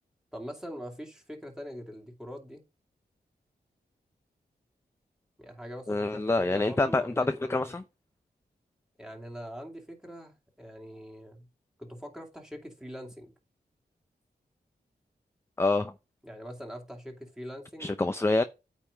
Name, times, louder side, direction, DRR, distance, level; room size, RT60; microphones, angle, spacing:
voice 1, 0.3-2.6 5.4-7.6 9.0-11.5 11.8-13.3 16.2-17.9, equal, 5° right, 2.4 m, -43 dB
voice 2, 5.9-7.8 15.6-15.9 17.8-18.4, left 2 dB, 15° left, 0.5 m, -26 dB
9.0 x 3.6 x 5.0 m
wide cardioid pair, 80°, 17 cm